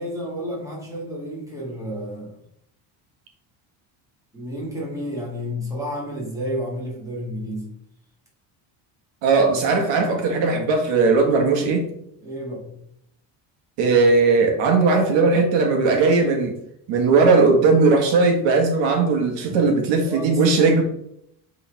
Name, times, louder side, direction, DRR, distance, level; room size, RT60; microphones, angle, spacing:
voice 1, 0.0-2.4 4.3-7.8 12.2-12.8 19.5-19.6 20.0-20.8, equal, 5° right, 1.9 m, -31 dB
voice 2, 9.2-11.9 13.8-16.6 16.9-20.8, right 4 dB, 85° right, 1.7 m, -18 dB
8.7 x 3.9 x 3.5 m
cardioid pair, 160°, 43 cm